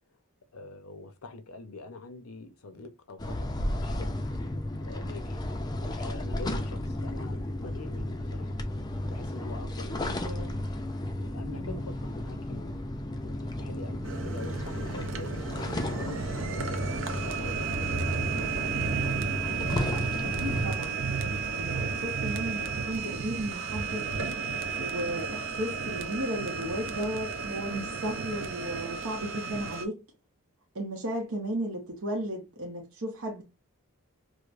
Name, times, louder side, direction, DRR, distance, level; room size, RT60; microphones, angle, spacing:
voice 1, 0.5-4.2 4.8-5.5 5.8-8.5 9.1-10.5 11.2-12.8 13.2-18.6, left 3 dB, 80° left, 0.7 m, -45 dB
sound 1, 3.2-20.6, left 1 dB, 20° left, 0.4 m, -34 dB
voice 2, 10.0-10.6 11.5-11.8 20.2-24.1 24.8-30.0 30.7-33.4, right 1 dB, 75° right, 0.9 m, -35 dB
sound 2, 14.0-29.8, right 5 dB, 60° right, 0.5 m, -33 dB
4.9 x 2.1 x 2.4 m
head